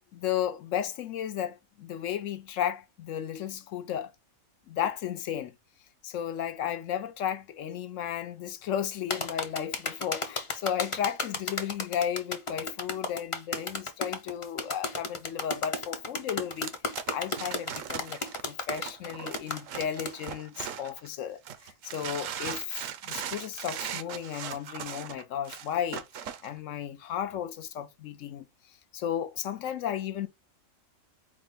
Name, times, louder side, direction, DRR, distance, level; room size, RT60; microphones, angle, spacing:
voice 1, 0.1-4.1 4.7-5.6 6.0-16.8 17.1-26.0 26.4-28.5 28.9-30.3, left 9 dB, 70° left, 1.0 m, -34 dB
sound 1, 9.1-20.1, left 3 dB, 30° left, 0.6 m, -33 dB
sound 2, 16.6-21.1 21.5-26.5, right 9 dB, 75° right, 1.0 m, -39 dB
4.8 x 2.2 x 3.8 m
omnidirectional pair, 1.4 m